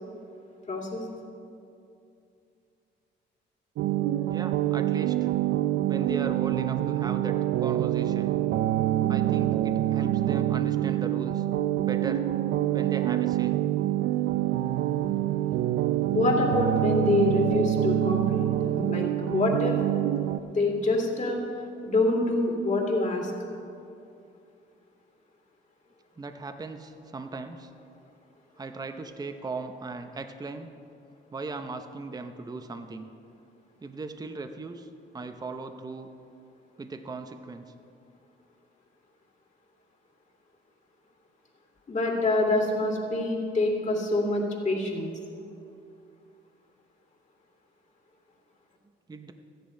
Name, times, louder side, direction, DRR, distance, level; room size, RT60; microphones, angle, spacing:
voice 1, 0.7-1.0 16.1-19.8 20.5-21.4 21.8-23.3 41.9-45.1, left 2 dB, 40° left, 0 dB, 2.6 m, -26 dB
sound 1, 3.8-20.4, right 13 dB, 75° right, 0.4 m, -26 dB
voice 2, 4.3-5.3 5.9-8.3 9.1-11.4 11.8-12.3 12.7-13.5 26.2-27.7 28.6-30.7 31.3-33.1 33.8-36.1 36.8-37.6 49.1-49.3, right 3 dB, 20° right, 7 dB, 0.7 m, -37 dB
13.5 x 10.5 x 5.3 m, 2.6 s
cardioid pair, 90°, 20 cm